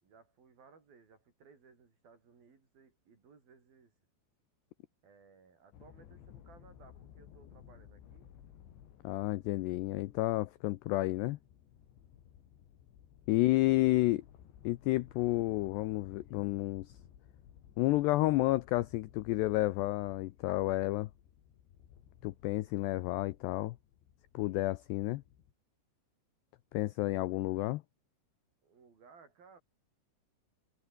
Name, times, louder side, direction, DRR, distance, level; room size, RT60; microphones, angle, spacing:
voice 1, 0.0-3.9 5.0-8.4 13.3-14.1 27.1-27.5 28.6-29.6, right 5 dB, 50° right, 6.4 m, -61 dB
sound 1, 5.7-25.5, left 10 dB, 65° left, 4.8 m, -58 dB
voice 2, 9.0-11.4 13.3-14.2 14.6-16.9 17.8-21.1 22.2-23.8 24.3-25.2 26.7-27.8, left 18 dB, 85° left, 2.4 m, -31 dB
omnidirectional pair, 5.8 m